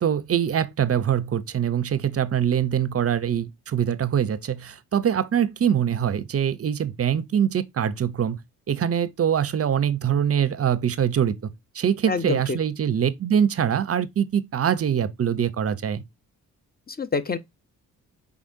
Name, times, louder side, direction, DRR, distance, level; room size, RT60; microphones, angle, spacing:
voice 1, 0.0-8.4 8.7-11.4 11.7-16.0, right 9 dB, 35° right, 0.6 m, -23 dB
voice 2, 12.1-12.6 16.9-17.4, left 4 dB, 25° left, 0.6 m, -26 dB
4.9 x 3.5 x 2.6 m
hypercardioid pair, 40°, 41 cm